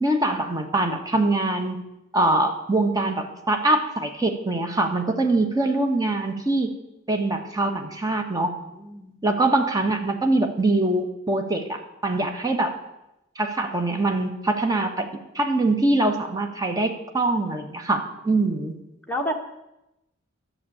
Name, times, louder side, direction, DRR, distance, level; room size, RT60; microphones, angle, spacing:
voice 1, 0.0-1.8 2.1-6.7 7.1-8.5 9.2-12.8 13.4-15.1 15.3-18.8, right 2 dB, 20° right, 5 dB, 1.2 m, -23 dB
voice 2, 8.4-9.1 18.3-18.7 19.1-19.3, equal, 10° left, 0 dB, 1.2 m, -32 dB
11.5 x 6.8 x 8.5 m, 0.92 s
head